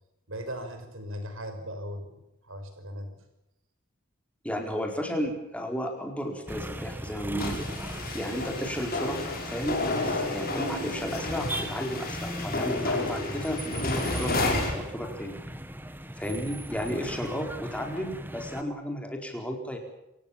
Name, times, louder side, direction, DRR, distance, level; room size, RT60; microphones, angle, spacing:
voice 1, 0.3-3.2, equal, 70° right, 7 dB, 5.7 m, -38 dB
voice 2, 4.4-7.7 8.1-9.2 9.5-15.4 16.2-19.8, equal, 5° left, 3 dB, 4.4 m, -33 dB
sound 1, 6.5-18.6, right 1 dB, 10° right, 1.3 m, -39 dB
sound 2, 7.4-14.8, left 2 dB, 45° left, 6.0 m, -31 dB
28.0 x 17.5 x 7.4 m, 0.88 s
head